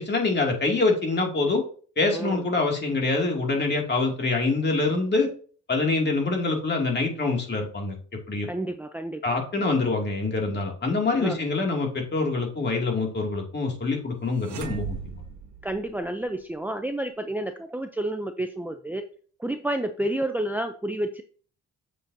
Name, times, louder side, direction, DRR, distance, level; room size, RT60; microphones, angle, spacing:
voice 1, 0.0-1.6 2.0-5.3 5.7-7.9 8.3-8.5 9.2-15.0, left 3 dB, 35° left, 1 dB, 2.5 m, -25 dB
voice 2, 2.1-2.4 8.4-9.4 11.1-11.4 15.6-19.0 19.4-21.2, right 1 dB, 5° right, 7 dB, 0.6 m, -30 dB
sound 1, 14.4-16.4, right 7 dB, 70° right, 1.3 m, -37 dB
7.4 x 6.7 x 2.8 m, 0.43 s
cardioid pair, 90°, 30 cm